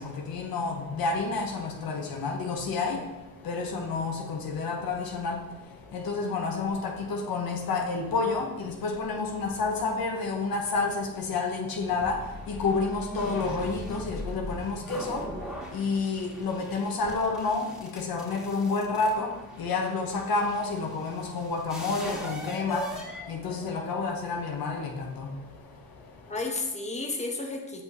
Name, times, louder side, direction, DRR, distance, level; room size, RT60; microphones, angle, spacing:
voice 1, 0.0-26.3, left 4 dB, 75° left, 1.2 m, -30 dB
sound 1, 12.0-24.0, left 1 dB, ahead, 1.9 m, -41 dB
voice 2, 26.3-27.8, left 3 dB, 20° left, 1.3 m, -33 dB
7.6 x 5.6 x 3.1 m
cardioid pair, 65°, 36 cm